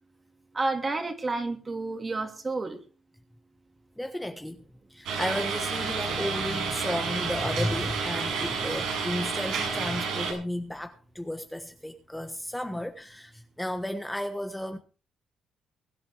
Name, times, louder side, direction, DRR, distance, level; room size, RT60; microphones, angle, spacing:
voice 1, 0.5-2.8, right 3 dB, 30° right, 2.8 m, -30 dB
voice 2, 4.0-4.6 4.9-14.8, left 1 dB, 5° left, 1.3 m, -33 dB
sound 1, 5.1-10.3, right 5 dB, 85° right, 6.0 m, -30 dB
22.0 x 10.5 x 3.4 m
cardioid pair, 90°, 0 cm